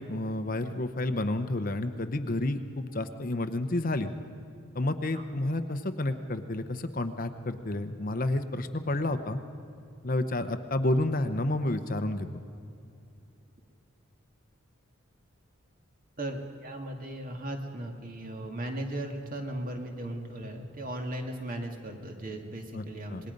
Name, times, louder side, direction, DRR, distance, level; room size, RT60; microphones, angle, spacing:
voice 1, 0.0-4.1 4.7-9.4 10.0-12.3 22.7-22.8 23.1-23.2, left 1 dB, 40° left, 9 dB, 0.8 m, -30 dB
voice 2, 16.2-23.3, right 1 dB, 40° right, 3 dB, 2.1 m, -37 dB
26.5 x 20.5 x 5.3 m, 2.6 s
head